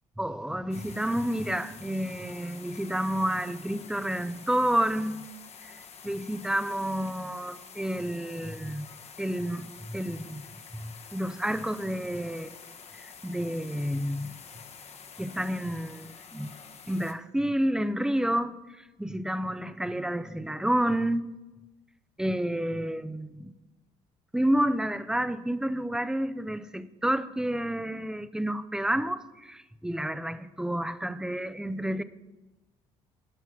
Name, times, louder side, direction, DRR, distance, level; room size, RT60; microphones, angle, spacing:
voice 1, 0.2-5.2 5.6-5.8 6.0-8.9 9.2-10.5 10.7-12.5 12.9-14.4 15.2-16.5 16.9-21.3 22.2-23.5 24.3-32.0, right 1 dB, 5° right, 0.6 m, -30 dB
sound 1, 0.7-17.1, left 6 dB, 50° left, 1.2 m, -48 dB
13.0 x 5.6 x 6.1 m
supercardioid pair, 70°, 14 cm